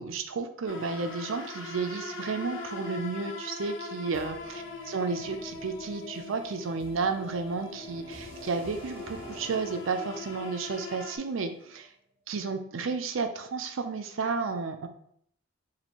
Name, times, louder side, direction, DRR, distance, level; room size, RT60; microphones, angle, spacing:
voice 1, 0.0-11.9 12.3-14.9, right 4 dB, 80° right, 7 dB, 0.5 m, -32 dB
sound 1, 0.7-11.2, left 4 dB, 65° left, 0.5 m, -41 dB
sound 2, 4.1-12.0, equal, 30° right, 0.7 m, -49 dB
2.9 x 2.7 x 4.2 m, 0.67 s
head